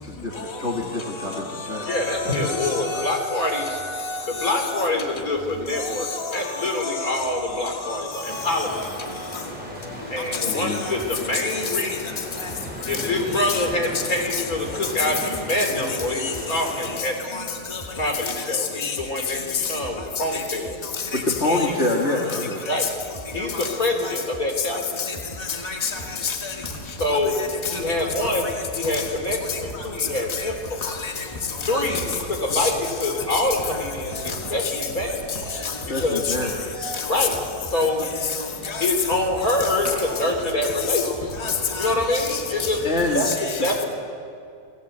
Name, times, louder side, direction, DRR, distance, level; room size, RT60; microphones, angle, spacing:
voice 1, 0.0-1.9 2.4-2.6 2.9-3.1 10.4-10.8 21.1-22.7 35.9-36.5 42.8-43.3, left 2 dB, 45° left, -2 dB, 2.5 m, -26 dB
voice 2, 1.0-3.1 3.3-4.8 5.8-8.9 10.3-10.8 12.4-12.5 13.0-13.1 13.3-13.6 14.3-14.4 16.2-16.3 17.3-17.4 17.7-17.8 18.8-19.0 19.6-19.7 20.2-20.4 21.0-21.2 21.5-21.7 23.5-23.7 24.0-24.1 25.0-25.1 25.5-26.5 27.6-27.8 28.2-28.3 29.5-29.6 30.3-30.5 30.8-31.1 31.6-31.8 32.5-32.7 33.3-33.4 35.5-35.8 36.2-36.4 36.8-37.3 38.3-38.4 38.6-38.9 40.1-40.2 41.0-41.1 41.4-42.7 43.2-43.7, left 5 dB, 15° left, 0 dB, 2.1 m, -30 dB
voice 3, 1.9-3.7 4.3-8.7 10.1-12.3 12.9-17.5 17.9-20.8 21.4-21.7 22.7-22.8 23.3-24.8 27.0-27.4 27.7-28.5 28.7-30.8 31.7-35.2 36.0-36.5 37.1-37.3 37.7-38.0 38.8-41.0 41.8-42.8 43.1-43.3 43.6-43.9, left 1 dB, 60° left, 2 dB, 4.2 m, -25 dB
sound 1, 8.3-16.8, equal, 5° right, 5.1 m, -37 dB
sound 2, 25.4-43.2, right 1 dB, 85° left, 7.7 m, -41 dB
28.5 x 19.0 x 8.2 m, 2.4 s
omnidirectional pair, 1.7 m